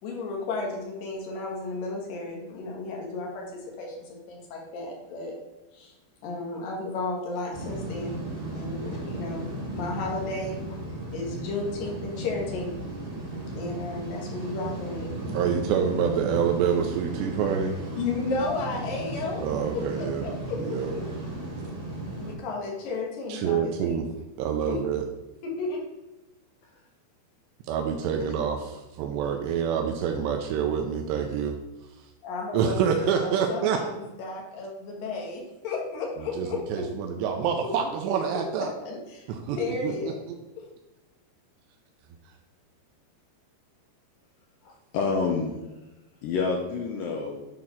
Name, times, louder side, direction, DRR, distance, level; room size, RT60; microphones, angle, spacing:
voice 1, 0.0-5.3 5.7-5.9 6.2-8.2 8.5-10.8 11.1-12.7 13.5-15.4 17.9-19.4 19.7-20.6 22.2-24.0 24.7-24.8 25.4-25.8 32.2-36.9 38.6-39.3 39.5-40.1, left 3 dB, 60° left, -1 dB, 3.0 m, -33 dB
sound 1, 7.5-22.3, right 1 dB, 40° right, 2.6 m, -35 dB
voice 2, 15.3-17.8 19.4-20.3 20.6-20.9 23.3-24.1 24.4-25.0 27.7-31.5 32.5-33.8 36.4-38.7 39.3-39.6 39.8-39.9, right 7 dB, 85° right, 4 dB, 2.8 m, -27 dB
voice 3, 44.6-45.6 46.2-47.5, left 4 dB, 80° left, 1 dB, 2.1 m, -28 dB
9.1 x 3.7 x 5.8 m, 1.0 s
omnidirectional pair, 4.9 m